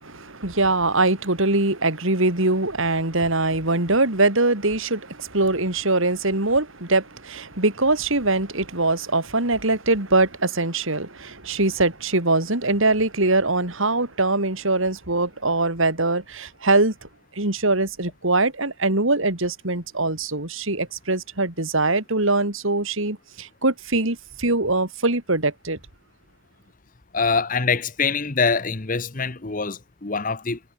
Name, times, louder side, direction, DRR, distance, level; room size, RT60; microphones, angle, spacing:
voice 1, 0.0-25.8, right 2 dB, 65° right, 3.2 m, -22 dB
voice 2, 27.1-30.6, left 4 dB, 35° left, 1.0 m, -24 dB
head